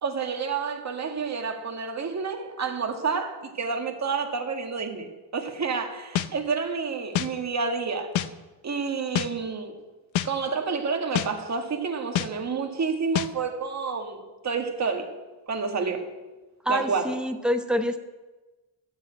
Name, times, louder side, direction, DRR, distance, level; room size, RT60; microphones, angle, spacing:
voice 1, 0.0-8.1 8.6-9.7 10.2-15.1 15.5-16.1 16.7-17.1, right 5 dB, 35° right, 3 dB, 1.8 m, -29 dB
sound 1, 6.2-6.3 7.1-7.3 8.1-8.3 9.2-9.3 10.1-10.3 11.1-11.3 12.2-12.3 13.1-13.3, left 12 dB, 75° left, 0.8 m, -25 dB
voice 2, 16.6-18.0, equal, ahead, 7 dB, 0.8 m, -26 dB
12.5 x 7.3 x 8.7 m, 1.2 s
cardioid pair, 125°, 47 cm